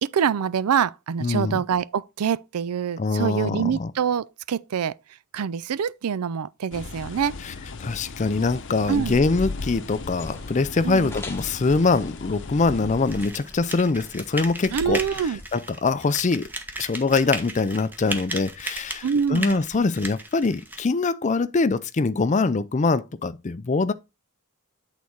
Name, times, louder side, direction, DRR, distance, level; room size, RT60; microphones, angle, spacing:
voice 1, 0.0-5.0 5.3-7.4 8.9-9.2 10.8-11.1 14.7-15.4 19.0-19.6, right 7 dB, 90° right, 0.4 m, -25 dB
voice 2, 1.2-1.6 3.0-3.9 7.4-7.5 7.8-16.5 16.8-23.9, left 3 dB, 35° left, 0.4 m, -23 dB
sound 1, 6.7-13.3, left 3 dB, 55° left, 0.8 m, -37 dB
sound 2, 8.8-15.5, left 1 dB, 10° left, 1.1 m, -42 dB
sound 3, 13.1-20.8, right 1 dB, 10° right, 0.8 m, -35 dB
8.5 x 4.1 x 4.6 m
head